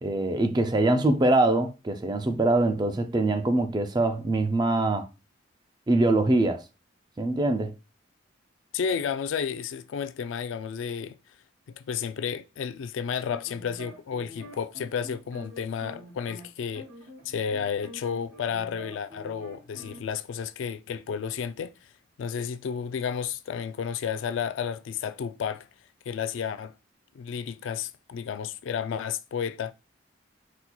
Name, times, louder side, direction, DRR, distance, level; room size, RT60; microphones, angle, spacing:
voice 1, 0.0-5.1 5.9-6.6 7.2-7.7, right 2 dB, 20° right, 0.4 m, -23 dB
voice 2, 8.7-11.2 11.8-16.9 17.3-21.7 22.2-25.7 26.1-26.7 27.1-29.7, left 7 dB, 75° left, 0.3 m, -32 dB
sound 1, 13.3-16.5 16.7-20.0, equal, 80° right, 2.2 m, -46 dB
4.2 x 4.0 x 2.2 m
head